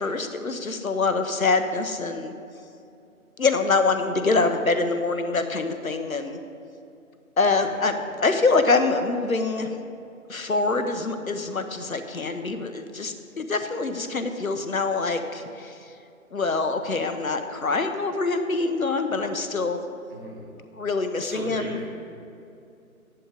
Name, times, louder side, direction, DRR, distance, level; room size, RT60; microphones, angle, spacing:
voice 1, 0.0-2.3 3.4-6.4 7.4-7.9 8.2-9.8 10.3-15.9 16.3-19.8 20.8-21.8, left 3 dB, 70° left, 8 dB, 1.1 m, -25 dB
voice 2, 7.5-7.9 20.1-20.5 21.2-21.9, right 1 dB, 35° right, -3 dB, 2.5 m, -38 dB
13.0 x 11.0 x 3.7 m, 2.6 s
figure-of-eight pair, 150°, 43 cm